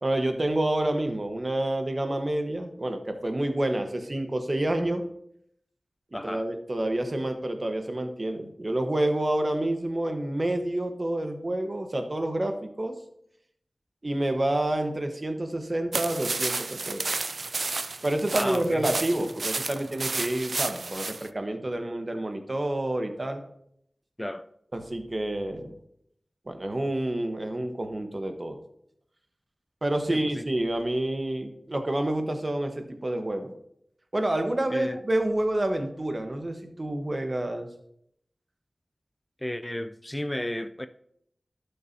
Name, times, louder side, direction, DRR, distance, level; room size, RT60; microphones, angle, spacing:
voice 1, 0.0-5.0 6.2-12.9 14.0-17.0 18.0-23.4 24.7-25.8 26.5-28.6 29.8-33.5 34.1-37.7, right 1 dB, 40° right, 1.1 m, -28 dB
voice 2, 6.1-6.5 18.3-18.8 24.2-24.5 30.1-30.4 34.7-35.0 39.4-40.9, left 1 dB, 20° left, 0.3 m, -33 dB
sound 1, 15.9-21.3, right 3 dB, 70° right, 0.3 m, -31 dB
11.5 x 6.8 x 2.7 m
wide cardioid pair, 50°, 0 cm